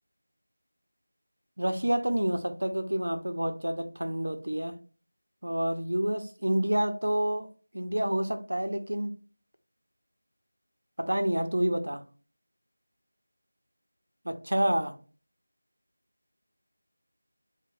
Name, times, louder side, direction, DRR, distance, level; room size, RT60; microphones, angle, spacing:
voice 1, 1.6-4.8 5.4-7.5 7.7-9.2 11.0-12.0 14.2-15.0, right 1 dB, 80° right, 0.5 m, -28 dB
3.8 x 2.1 x 2.6 m
figure-of-eight pair, 170°, 0 cm